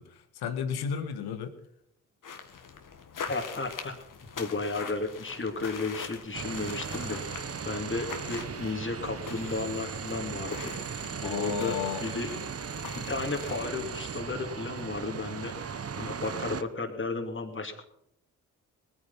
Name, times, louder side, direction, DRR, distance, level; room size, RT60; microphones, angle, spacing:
voice 1, 0.0-1.5 11.2-12.0, left 7 dB, 75° left, 10 dB, 1.7 m, -33 dB
sound 1, 2.2-13.8, left 6 dB, 55° left, 2.0 m, -44 dB
voice 2, 3.3-3.9 4.3-7.2 7.6-10.7 11.2-12.4 12.9-15.6 16.0-17.8, left 3 dB, 30° left, 3 dB, 2.7 m, -33 dB
sound 2, 6.3-16.6, right 6 dB, 40° right, 1.1 m, -37 dB
19.5 x 9.7 x 5.7 m, 0.77 s
hypercardioid pair, 45°, 38 cm